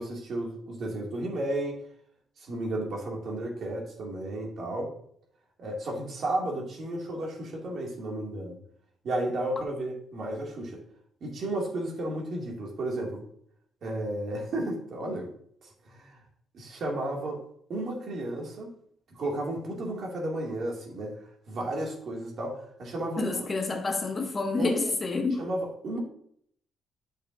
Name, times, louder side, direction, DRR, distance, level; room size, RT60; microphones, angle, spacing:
voice 1, 0.0-1.8 2.4-4.9 5.6-8.6 9.0-10.8 11.2-13.2 13.8-15.3 15.6-16.2 16.5-17.4 17.7-18.7 19.2-21.2 21.5-23.5 24.6-24.9 25.4-26.0, right 1 dB, 60° right, 2.3 m, -33 dB
voice 2, 23.2-25.4, left 3 dB, 30° left, 1.1 m, -28 dB
8.5 x 6.4 x 2.6 m
cardioid pair, 90°, 0 cm